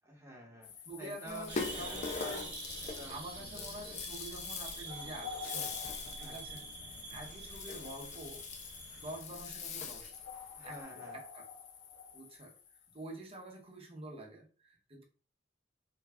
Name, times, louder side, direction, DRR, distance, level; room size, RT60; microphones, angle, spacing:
voice 1, 0.0-0.7 1.0-2.3 2.8-3.7 6.0-6.4 10.5-11.2, left 1 dB, 15° right, -2 dB, 1.0 m, -50 dB
sound 1, 0.6-13.4, left 7 dB, 90° left, 0.6 m, -50 dB
voice 2, 0.9-2.5 2.8-5.8 6.2-6.6 7.1-8.4 9.0-10.1 10.6-10.8 11.1-11.5 12.1-12.5 12.9-15.0, right 1 dB, 30° right, 1 dB, 0.7 m, -47 dB
Rattle (instrument), 1.3-10.3, left 4 dB, 40° left, 0.4 m, -43 dB
sound 2, 1.5-9.2, right 4 dB, 75° right, 0.9 m, -47 dB
3.3 x 2.3 x 3.4 m, 0.40 s
head